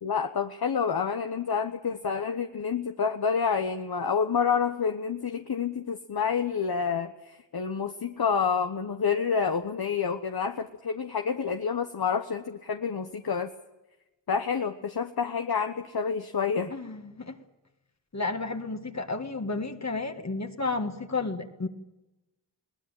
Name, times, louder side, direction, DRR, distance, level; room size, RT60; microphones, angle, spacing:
voice 1, 0.0-13.5 14.3-16.7, left 6 dB, 55° left, 6 dB, 1.2 m, -28 dB
voice 2, 16.7-17.4 18.1-21.7, left 3 dB, 35° left, 5 dB, 1.8 m, -32 dB
21.5 x 18.5 x 8.9 m, 1.0 s
wide cardioid pair, 75°, 44 cm